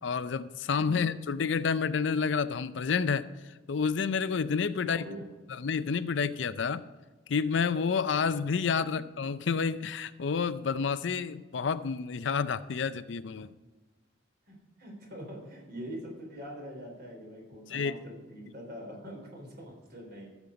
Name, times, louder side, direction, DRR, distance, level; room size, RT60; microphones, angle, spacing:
voice 1, 0.0-3.3 3.7-5.0 5.5-6.8 7.3-13.5 17.7-18.0, left 5 dB, 65° left, 13 dB, 0.5 m, -29 dB
voice 2, 0.8-1.2 4.8-5.3 8.9-9.0 14.5-20.3, equal, 55° right, 1 dB, 3.6 m, -44 dB
14.0 x 7.3 x 5.1 m, 1.3 s
head